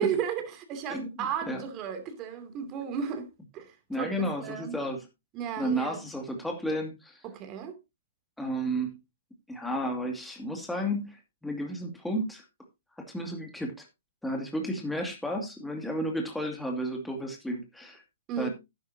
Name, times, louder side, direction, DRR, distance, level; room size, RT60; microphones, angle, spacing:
voice 1, 0.0-3.3 3.5-4.1 4.4-4.8 5.3-6.1 7.2-7.8 18.3-18.5, right 8 dB, 30° right, 2.8 m, -33 dB
voice 2, 3.9-5.0 5.6-7.2 8.4-9.0 9.5-12.4 13.1-13.9 14.2-18.0 18.4-18.5, equal, 5° left, 2.4 m, -32 dB
11.5 x 10.0 x 2.8 m
hypercardioid pair, 130°, 0 cm